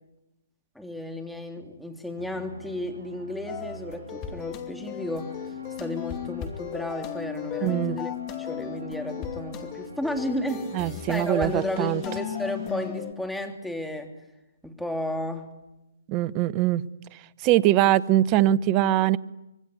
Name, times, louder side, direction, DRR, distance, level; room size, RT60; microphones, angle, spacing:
voice 1, 0.7-8.1 8.4-14.1 14.6-15.5, left 1 dB, ahead, 3.1 m, -33 dB
sound 1, 2.2-12.9, right 3 dB, 65° right, 6.8 m, -47 dB
sound 2, 3.5-13.1, left 10 dB, 25° left, 2.6 m, -36 dB
voice 2, 7.6-8.0 10.7-12.0 16.1-16.8 17.4-19.2, right 14 dB, 25° right, 0.9 m, -22 dB
26.0 x 23.0 x 9.8 m
figure-of-eight pair, 135°, 0 cm